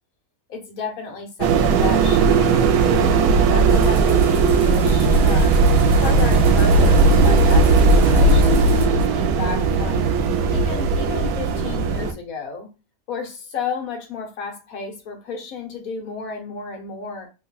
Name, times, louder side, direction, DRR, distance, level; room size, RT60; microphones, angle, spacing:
voice 1, 0.5-5.6 6.0-10.1 10.5-12.7 13.1-17.3, left 5 dB, 70° left, 1.4 m, -32 dB
sound 1, 1.4-12.1, right 3 dB, 85° right, 1.1 m, -17 dB
sound 2, 3.7-8.9, right 2 dB, 50° right, 1.1 m, -33 dB
3.1 x 2.2 x 3.9 m
omnidirectional pair, 1.6 m